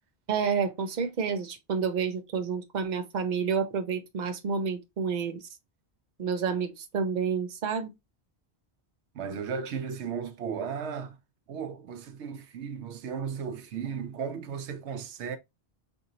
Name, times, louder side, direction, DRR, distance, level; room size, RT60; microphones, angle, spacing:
voice 1, 0.3-5.4 6.2-7.9, right 6 dB, 45° right, 0.8 m, -29 dB
voice 2, 9.1-11.2 11.5-15.4, right 6 dB, 85° right, 1.0 m, -35 dB
4.5 x 2.7 x 2.8 m
omnidirectional pair, 1.1 m